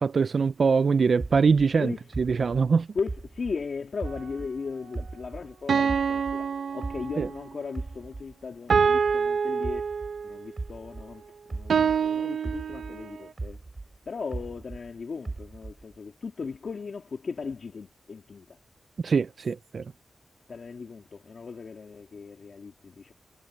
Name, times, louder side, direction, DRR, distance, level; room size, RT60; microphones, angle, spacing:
voice 1, 0.0-1.9 2.2-2.9 7.2-7.3 19.0-19.8, right 5 dB, 60° right, 0.4 m, -23 dB
sound 1, 1.2-4.6 4.9-7.4 7.7-12.1 12.4-14.9 15.2-16.0, right 3 dB, 35° right, 3.6 m, -38 dB
voice 2, 1.7-2.1 2.9-9.9 10.2-11.2 11.5-13.6 14.1-18.6 20.5-23.1, left 5 dB, 60° left, 2.2 m, -37 dB
sound 2, 4.1-4.2 5.7-7.4 8.7-10.4 11.7-13.2, right 6 dB, 80° right, 1.0 m, -26 dB
wide cardioid pair, 100°, 0 cm